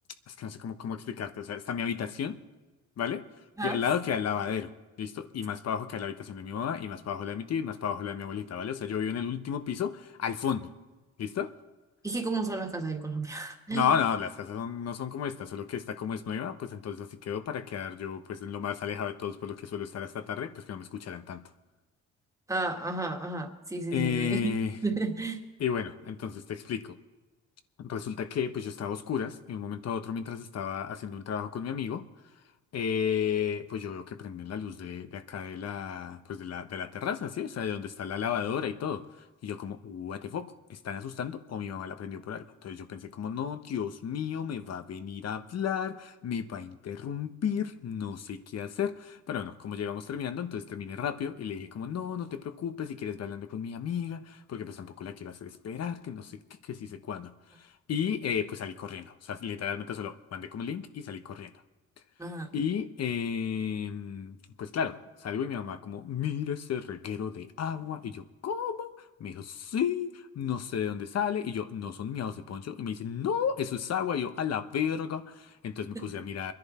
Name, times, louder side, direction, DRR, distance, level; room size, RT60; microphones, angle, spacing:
voice 1, 0.3-2.4 3.0-3.2 3.6-4.7 5.0-10.7 11.2-11.5 13.7-21.4 23.9-24.7 25.6-27.0 27.8-32.0 32.7-39.0 39.4-57.3 57.9-61.5 62.5-65.0 65.2-68.9 69.2-76.5, left 8 dB, 55° left, 10 dB, 1.0 m, -33 dB
voice 2, 12.0-13.8 22.5-24.4 24.8-25.4 62.2-62.5 75.9-76.1, right 3 dB, 10° right, 3 dB, 1.9 m, -32 dB
23.5 x 10.5 x 4.3 m, 1.2 s
cardioid pair, 90°, 30 cm